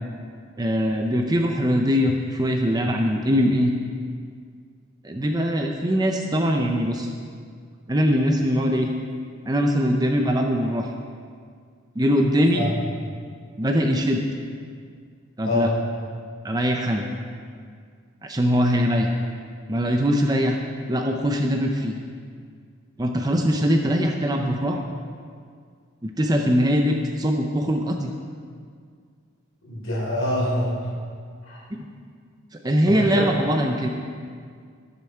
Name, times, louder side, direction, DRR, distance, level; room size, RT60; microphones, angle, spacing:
voice 1, 0.6-3.7 5.0-7.1 7.9-8.9 9.5-10.9 12.0-12.7 13.6-14.2 15.4-15.7 16.4-17.0 18.2-19.2 19.7-20.6 20.9-22.0 23.0-24.8 26.0-28.1 31.7-31.9 32.6-33.9, equal, 20° right, 2 dB, 0.6 m, -22 dB
voice 2, 29.6-30.9 31.5-31.7 32.8-33.3, left 1 dB, 60° left, -4 dB, 3.5 m, -25 dB
18.0 x 6.9 x 4.5 m, 2.1 s
head